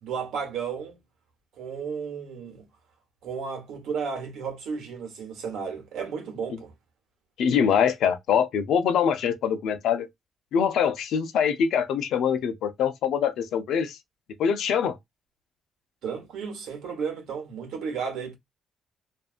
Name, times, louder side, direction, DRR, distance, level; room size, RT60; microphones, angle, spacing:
voice 1, 0.0-1.0 1.6-2.6 3.2-6.7 16.0-18.4, right 6 dB, 85° right, 1.1 m, -33 dB
voice 2, 7.4-10.1 10.5-14.0 14.4-15.0, left 7 dB, 80° left, 0.6 m, -24 dB
2.6 x 2.4 x 2.4 m
cardioid pair, 90°, 0 cm